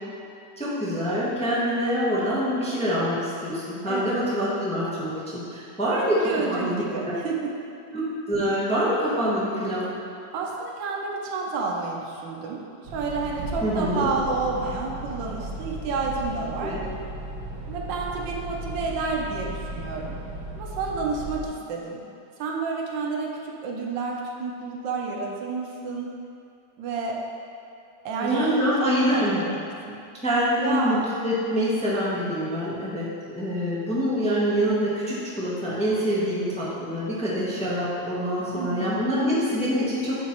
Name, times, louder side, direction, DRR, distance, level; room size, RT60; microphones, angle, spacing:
voice 1, 0.6-7.1 7.9-9.9 13.6-14.1 16.6-16.8 28.2-29.4 30.2-33.1 33.3-40.2, equal, 5° left, -9 dB, 0.8 m, -25 dB
voice 2, 3.9-4.3 5.9-7.5 10.3-12.6 12.9-16.7 17.6-20.2 20.5-22.0 22.4-26.1 26.8-27.2 28.0-30.0 30.6-31.1 38.5-39.0, right 4 dB, 90° right, -1 dB, 1.5 m, -30 dB
sound 1, 12.8-21.5, right 2 dB, 70° right, 1.4 m, -36 dB
7.9 x 3.1 x 4.4 m, 2.5 s
omnidirectional pair, 1.9 m